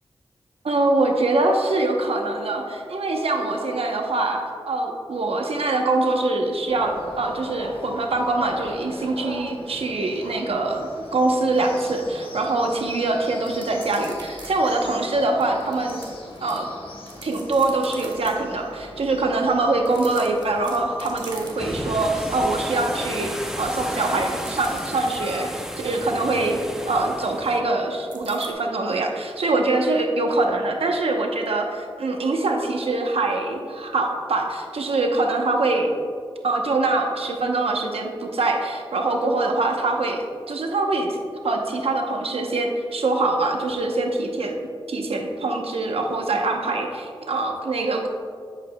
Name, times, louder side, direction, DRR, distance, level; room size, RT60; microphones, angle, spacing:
voice 1, 0.6-16.0 16.4-16.7 17.2-23.3 23.6-26.6 26.9-35.9 36.4-41.2 41.4-44.6 44.9-48.1, right 2 dB, 75° right, 2 dB, 0.9 m, -24 dB
sound 1, 6.7-25.0, left 2 dB, 65° left, 1.3 m, -41 dB
sound 2, 13.4-14.5 14.8-14.9 15.4-16.6 17.0-18.3 19.8-21.9 22.2-22.5 22.8-25.6 28.1-28.5, right 2 dB, 45° right, 1.5 m, -43 dB
sound 3, 20.2-27.6, equal, 5° right, 0.8 m, -33 dB
9.0 x 8.1 x 2.2 m, 2.2 s
cardioid pair, 60°, 10 cm